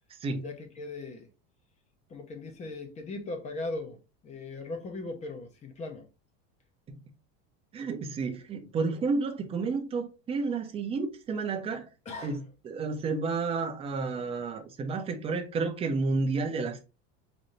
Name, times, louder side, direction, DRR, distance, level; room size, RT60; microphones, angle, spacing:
voice 1, 0.4-1.3 2.1-4.0 4.2-6.1 12.1-12.4, left 2 dB, 20° left, 0.7 m, -38 dB
voice 2, 7.7-11.9 12.2-16.8, right 4 dB, 20° right, 0.6 m, -31 dB
4.0 x 2.7 x 3.1 m
supercardioid pair, 155°, 32 cm